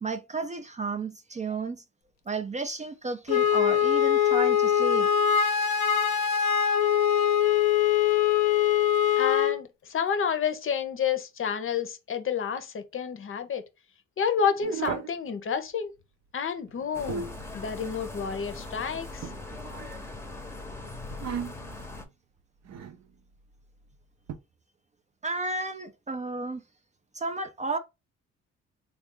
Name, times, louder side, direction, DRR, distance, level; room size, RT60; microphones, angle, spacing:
voice 1, 0.0-1.8 2.3-5.1 25.2-26.6 27.1-27.8, right 3 dB, 25° right, 0.4 m, -32 dB
Wind instrument woodwind instrument, 3.3-9.6, left 9 dB, 80° left, 0.6 m, -23 dB
voice 2, 9.2-13.6 14.2-15.9 16.3-17.3 17.5-19.3, left 7 dB, 45° left, 0.7 m, -29 dB
sound 1, 14.6-15.2 16.7-17.5 19.2-20.1 21.1-21.8 22.6-23.0 24.3-24.4, right 7 dB, 60° right, 0.7 m, -36 dB
sound 2, 16.9-22.1, left 2 dB, 10° left, 0.8 m, -40 dB
3.6 x 2.4 x 3.7 m
cardioid pair, 90°, 30 cm